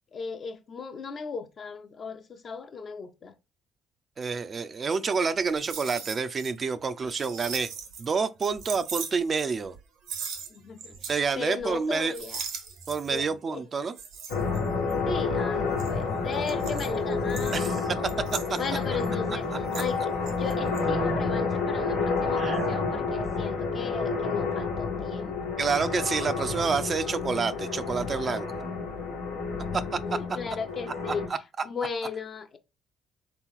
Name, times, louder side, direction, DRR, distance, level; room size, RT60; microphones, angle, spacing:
voice 1, 0.1-3.3 10.5-11.1 11.4-12.4 13.1-13.6 15.1-18.0 18.6-25.4 28.6-28.9 30.1-31.2 31.6-32.6, left 5 dB, 50° left, 0.7 m, -36 dB
voice 2, 4.2-7.7 8.0-9.8 11.1-12.1 12.9-14.0 17.5-18.0 18.3-18.6 22.4-22.6 25.6-28.6 29.7-30.0 31.1-31.2, right 5 dB, 45° right, 0.4 m, -28 dB
sound 1, 5.4-6.5 6.8-8.1 8.4-9.8 10.1-11.3 11.6-11.9 12.1-13.2 13.9-15.1 15.6-20.0 20.3-20.8, right 6 dB, 75° right, 0.9 m, -39 dB
sound 2, 14.3-31.3, left 4 dB, 90° left, 1.1 m, -29 dB
3.6 x 3.0 x 3.7 m
hypercardioid pair, 50°, 0 cm